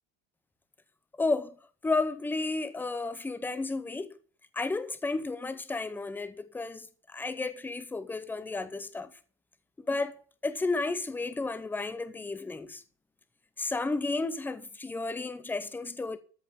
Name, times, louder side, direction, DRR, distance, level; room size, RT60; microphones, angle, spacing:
voice 1, 1.2-1.6 1.8-4.2 4.5-9.1 9.8-12.8 13.6-16.2, left 3 dB, 5° left, 0.7 m, -32 dB
13.5 x 5.4 x 7.4 m
cardioid pair, 170°, 39 cm